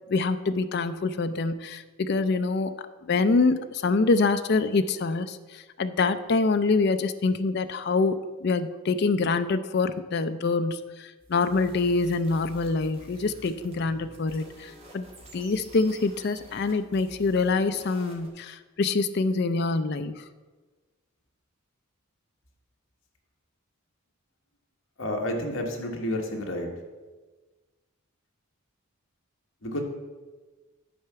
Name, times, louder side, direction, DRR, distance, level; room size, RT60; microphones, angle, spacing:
voice 1, 0.1-15.0 15.3-20.2, left 3 dB, 50° left, 10 dB, 0.4 m, -25 dB
sound 1, 11.2-18.3, right 1 dB, 30° right, 1.8 m, -49 dB
voice 2, 25.0-26.7 29.6-29.8, left 1 dB, 65° left, 1 dB, 1.4 m, -30 dB
9.8 x 4.6 x 6.8 m, 1.3 s
head